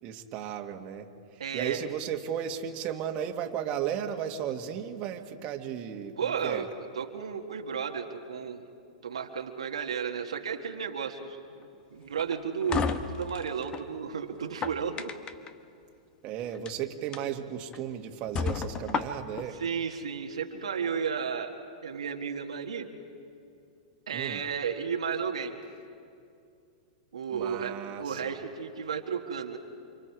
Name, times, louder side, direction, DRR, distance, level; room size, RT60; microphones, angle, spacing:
voice 1, 0.0-6.7 16.2-19.6 24.1-24.4 27.3-28.2, right 9 dB, 40° right, 3 dB, 2.0 m, -35 dB
voice 2, 1.4-1.8 6.2-6.7 6.9-8.7 9.0-15.1 19.6-21.5 21.8-22.9 24.1-25.5 27.1-29.6, right 6 dB, 80° right, 3 dB, 1.6 m, -33 dB
sound 1, 12.2-13.9 14.4-15.5 16.5-16.7 17.1-17.2 17.7-17.8 18.3-19.5, left 6 dB, 25° left, 1.2 m, -32 dB
29.5 x 26.5 x 4.7 m, 2.5 s
hypercardioid pair, 110°, 3 cm